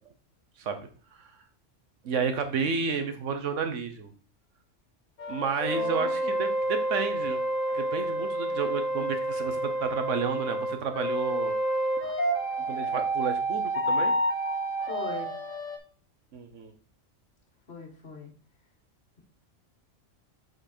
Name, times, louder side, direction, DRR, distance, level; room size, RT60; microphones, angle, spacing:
voice 1, 2.0-4.1 5.3-7.4 7.7-11.6 12.0-14.1 16.3-16.7, right 5 dB, 70° right, 8 dB, 1.3 m, -31 dB
sound 1, 5.2-15.8, right 1 dB, 90° left, 1.7 m, -29 dB
voice 2, 5.7-6.5 14.8-15.3 17.7-18.3, left 3 dB, 55° left, -1 dB, 1.9 m, -41 dB
7.5 x 4.8 x 4.4 m, 0.40 s
omnidirectional pair, 1.3 m